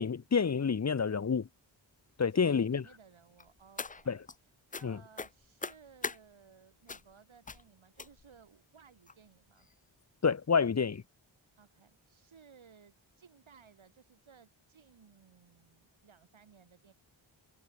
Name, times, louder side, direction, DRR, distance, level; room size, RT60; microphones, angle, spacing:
voice 1, 0.0-1.5 2.2-2.8 4.1-4.2 4.8-5.0 10.2-11.0, left 6 dB, 35° left, 0.8 m, -28 dB
voice 2, 2.2-9.7 11.6-16.9, right 6 dB, 75° right, 4.2 m, -60 dB
sound 1, 3.4-4.4 4.7-4.9 5.1-6.2 6.9-7.1 7.4-7.6 8.0-8.4 9.1-9.2 9.6-9.7 10.0-10.1, left 4 dB, 20° left, 0.4 m, -41 dB
wide cardioid pair, 75°, 47 cm